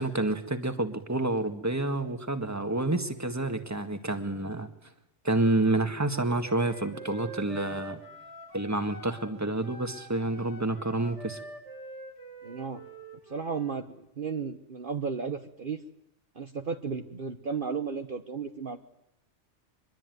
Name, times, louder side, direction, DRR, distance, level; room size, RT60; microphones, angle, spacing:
voice 1, 0.0-4.7 5.2-8.0 8.5-11.4, right 2 dB, 15° right, 7 dB, 1.9 m, -29 dB
Wind instrument woodwind instrument, 5.3-9.4 9.6-13.8, right 2 dB, 85° right, 6.4 m, -46 dB
voice 2, 12.4-12.8 13.3-15.8 16.3-18.8, right 5 dB, 50° right, 6 dB, 1.3 m, -34 dB
25.0 x 22.0 x 9.5 m, 0.80 s
omnidirectional pair, 1.2 m